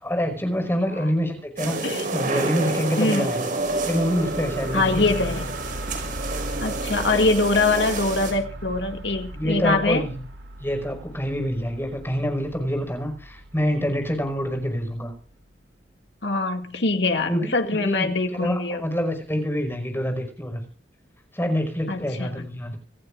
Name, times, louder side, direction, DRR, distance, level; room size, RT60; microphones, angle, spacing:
voice 1, 0.0-3.5 3.8-5.0 9.3-10.2 10.6-15.1 17.2-20.6 21.3-22.8, equal, 15° left, 5.4 m, -26 dB
sound 1, 1.6-8.3, right 2 dB, 45° right, 5.3 m, -29 dB
voice 2, 3.0-3.3 4.7-5.6 6.6-10.1 16.2-18.8 21.9-22.5, left 3 dB, 70° left, 2.2 m, -23 dB
sound 2, 3.6-15.2, right 1 dB, 80° right, 4.5 m, -37 dB
27.0 x 14.5 x 2.6 m
head